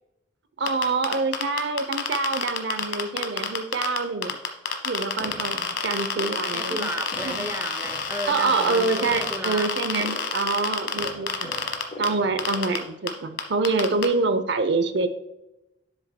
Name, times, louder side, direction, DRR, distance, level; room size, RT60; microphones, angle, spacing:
voice 1, 0.6-4.4 4.8-6.9 7.2-7.5 8.3-11.5 12.0-15.1, right 3 dB, 65° right, 10 dB, 0.7 m, -26 dB
sound 1, 0.7-12.1 12.4-12.8 13.1-13.2 13.4-14.1, left 6 dB, 85° left, 1.2 m, -28 dB
sound 2, 5.2-12.9, left 1 dB, 40° left, 2.6 m, -42 dB
voice 2, 6.5-9.7, right 1 dB, 15° right, 7 dB, 0.5 m, -33 dB
11.5 x 7.0 x 2.2 m, 0.91 s
head